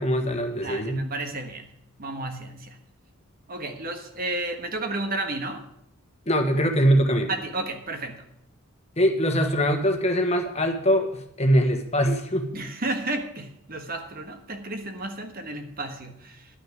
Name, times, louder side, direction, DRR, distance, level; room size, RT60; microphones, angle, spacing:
voice 1, 0.0-1.0 6.2-7.3 9.0-12.5, equal, 30° left, 5 dB, 1.5 m, -22 dB
voice 2, 0.6-1.7 2.0-2.8 3.5-5.6 7.3-8.2 12.5-16.5, right 2 dB, 45° right, 6 dB, 1.4 m, -32 dB
11.5 x 6.5 x 9.3 m, 0.73 s
head